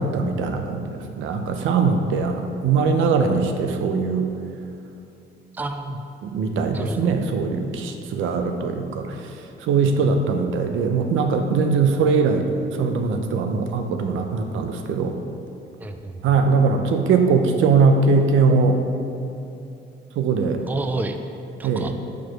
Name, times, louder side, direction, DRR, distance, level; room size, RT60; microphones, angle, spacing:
voice 1, 0.0-4.3 6.2-9.1 9.6-12.5 12.8-15.1 16.2-18.8 20.2-20.6 21.6-21.9, right 4 dB, 80° right, 5 dB, 0.6 m, -21 dB
voice 2, 5.6-6.0 6.7-7.1 15.8-16.4 20.7-21.2 21.6-21.9, right 2 dB, 10° right, 6 dB, 0.4 m, -29 dB
4.8 x 4.6 x 5.9 m, 2.7 s
cardioid pair, 90°, 20 cm